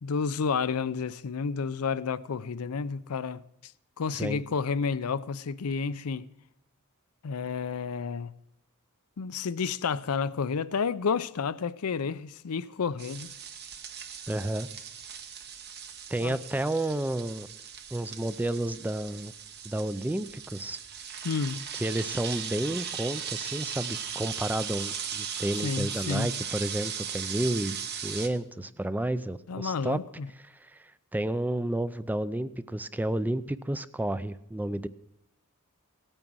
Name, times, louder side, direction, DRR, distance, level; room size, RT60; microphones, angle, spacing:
voice 1, 0.0-3.7 4.0-6.3 7.2-8.3 9.2-13.3 16.2-16.4 21.2-21.6 25.6-26.3 29.5-30.3, left 5 dB, 85° left, 0.5 m, -30 dB
sound 1, 13.0-28.3, right 7 dB, 50° right, 1.2 m, -38 dB
voice 2, 14.3-14.7 16.1-17.5 17.9-19.3 19.6-20.8 21.7-27.8 28.0-30.0 30.5-34.9, right 1 dB, 10° right, 0.4 m, -31 dB
17.0 x 8.9 x 6.2 m
head